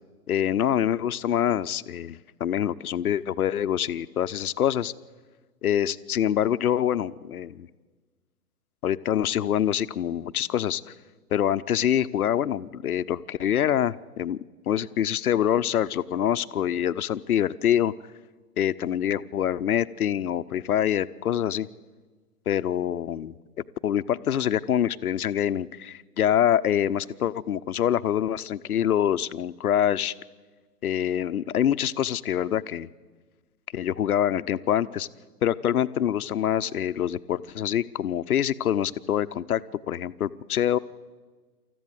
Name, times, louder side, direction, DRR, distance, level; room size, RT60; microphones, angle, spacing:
voice 1, 0.3-4.9 5.6-7.7 8.8-10.8 11.3-14.4 14.7-17.9 18.6-21.7 22.5-23.3 23.8-30.1 30.8-32.9 33.7-35.1 35.4-40.8, left 10 dB, 65° left, 14 dB, 0.9 m, -25 dB
28.0 x 14.5 x 8.2 m, 1.4 s
figure-of-eight pair, 120°, 47 cm